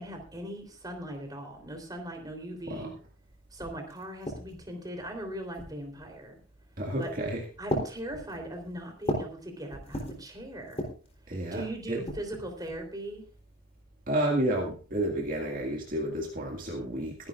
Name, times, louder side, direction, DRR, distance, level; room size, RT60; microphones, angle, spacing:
voice 1, 0.0-2.9 3.5-6.3 7.0-7.1 7.6-10.8 11.5-13.2, right 1 dB, 20° right, 3 dB, 3.5 m, -39 dB
sound 1, 3.2-3.3 3.6-4.7 5.5-6.0 6.9-7.2 7.7-9.4 9.7-10.3 10.7-11.1 11.8-12.8, equal, 30° left, 3.6 m, -36 dB
voice 2, 6.8-7.4 11.3-12.0 14.1-17.3, right 1 dB, 45° right, 0 dB, 2.0 m, -31 dB
22.5 x 11.0 x 2.5 m, 0.37 s
head